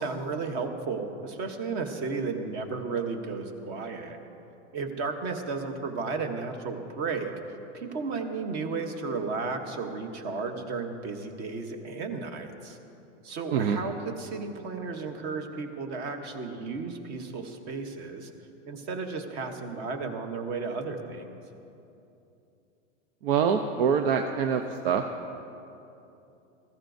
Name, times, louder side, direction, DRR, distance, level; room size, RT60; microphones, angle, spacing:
voice 1, 0.0-4.2 4.7-7.3 7.7-12.8 13.2-18.3 18.7-21.3, right 4 dB, 25° right, 6 dB, 0.9 m, -33 dB
voice 2, 23.2-25.0, right 7 dB, 45° right, 6 dB, 0.6 m, -25 dB
19.5 x 14.5 x 2.6 m, 2.8 s
supercardioid pair, 160°, 38 cm